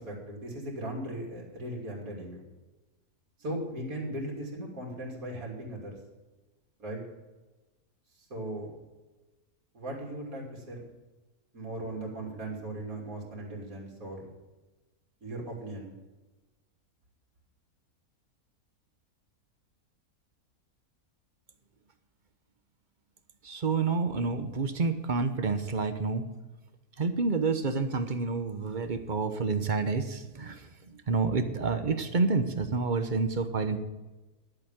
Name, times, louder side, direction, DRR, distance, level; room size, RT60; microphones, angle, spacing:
voice 1, 0.0-2.4 3.4-6.0 6.8-7.0 8.2-8.7 9.7-10.8 11.5-14.3 15.2-15.9, right 1 dB, 70° right, -2 dB, 3.3 m, -38 dB
voice 2, 23.4-26.2 27.0-33.8, right 4 dB, 35° right, 9 dB, 0.9 m, -29 dB
11.0 x 8.0 x 7.3 m, 1.2 s
omnidirectional pair, 1.6 m